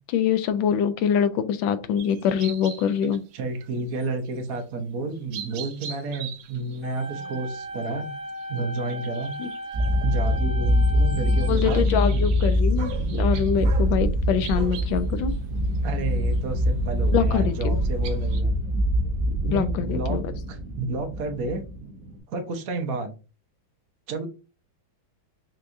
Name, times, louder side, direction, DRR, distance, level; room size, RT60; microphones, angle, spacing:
voice 1, 0.1-3.2 9.4-9.5 11.5-15.3 17.1-17.8 19.5-20.3, left 8 dB, 80° left, 12 dB, 1.3 m, -24 dB
sound 1, 2.0-3.4 3.6-4.1 4.5-4.6 5.1-14.0 14.4-18.4, right 7 dB, 85° right, 1.5 m, -43 dB
voice 2, 3.3-8.1 8.5-9.3 10.0-11.8 12.1-12.2 15.8-18.6 19.5-20.2 20.5-21.6 22.3-23.1 24.1-24.3, right 3 dB, 55° right, 5 dB, 1.1 m, -31 dB
sound 2, 6.8-11.8, right 1 dB, 60° left, 1.3 m, -36 dB
sound 3, 9.7-22.2, equal, 35° right, 1.7 m, -24 dB
5.8 x 2.9 x 2.6 m, 0.32 s
omnidirectional pair, 2.2 m